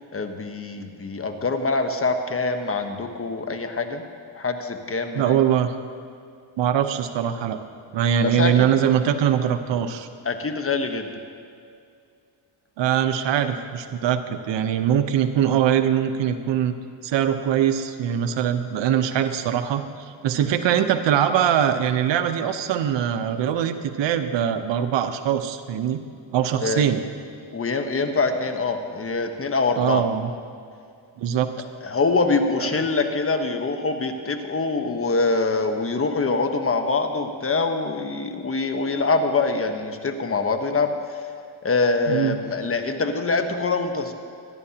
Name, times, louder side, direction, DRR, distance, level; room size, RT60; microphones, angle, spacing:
voice 1, 0.1-4.0 4.3-5.4 8.2-8.7 10.2-11.1 26.6-26.8 27.5-30.0 31.8-40.9 41.6-44.1, left 3 dB, 30° left, 6 dB, 1.2 m, -24 dB
voice 2, 5.1-5.7 6.6-7.6 7.9-10.1 12.8-16.7 17.0-19.8 20.2-26.0 26.3-27.0 29.8-30.3 31.2-31.5 32.7-32.8 42.1-42.4, right 9 dB, 65° right, 8 dB, 0.9 m, -22 dB
25.5 x 11.0 x 2.9 m, 2.4 s
cardioid pair, 95°, 47 cm